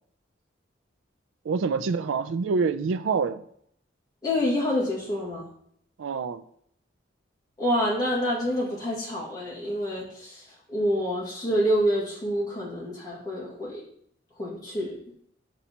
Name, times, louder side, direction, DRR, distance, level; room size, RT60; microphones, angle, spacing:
voice 1, 1.4-3.4 6.0-6.4, right 5 dB, 85° right, 12 dB, 0.4 m, -26 dB
voice 2, 4.2-5.5 7.6-10.4 10.7-13.8 14.4-15.0, equal, 20° left, -5 dB, 2.0 m, -27 dB
7.2 x 5.4 x 2.9 m, 0.67 s
head